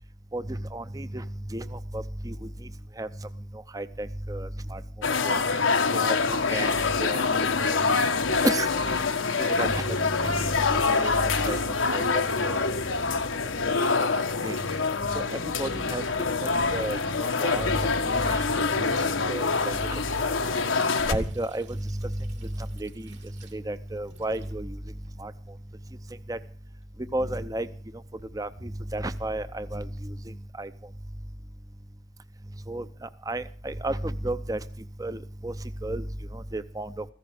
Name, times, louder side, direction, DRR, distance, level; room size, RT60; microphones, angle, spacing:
voice 1, 0.3-2.5 3.0-3.1 3.7-4.8 5.2-5.4 5.9-6.7 7.0-7.8 8.4-8.7 9.4-10.3 11.0-11.6 11.9-12.0 12.4-12.8 13.4-13.7 14.1-14.6 15.1-15.2 15.6-16.0 16.4-20.3 21.1-23.2 23.5-24.8 25.2-25.3 26.3-26.4 27.1-27.7 28.3-30.7 32.7-34.6 35.0-35.5 35.8-36.0 36.3-37.1, right 1 dB, 20° right, 12 dB, 0.6 m, -33 dB
sound 1, 5.0-21.1, left 4 dB, 90° left, 1.5 m, -25 dB
Water tap faucet / Sink (filling or washing), 21.0-30.0, equal, 70° right, 3.0 m, -42 dB
15.5 x 15.0 x 5.0 m, 0.43 s
head